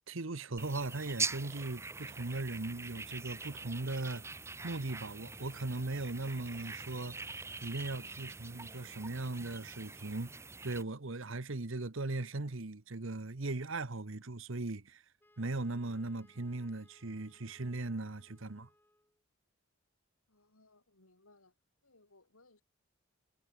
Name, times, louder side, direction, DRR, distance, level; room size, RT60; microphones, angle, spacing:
voice 1, 0.0-4.2 4.6-10.3 10.6-15.0 15.4-18.7, right 2 dB, 65° right, 1.1 m, -38 dB
sound 1, 0.6-10.8, right 4 dB, 15° right, 0.7 m, -43 dB
Wind instrument woodwind instrument, 15.2-19.2, left 1 dB, 10° left, 2.3 m, -68 dB
voice 2, 20.3-21.6 21.8-22.6, left 2 dB, 90° left, 5.2 m, -65 dB
head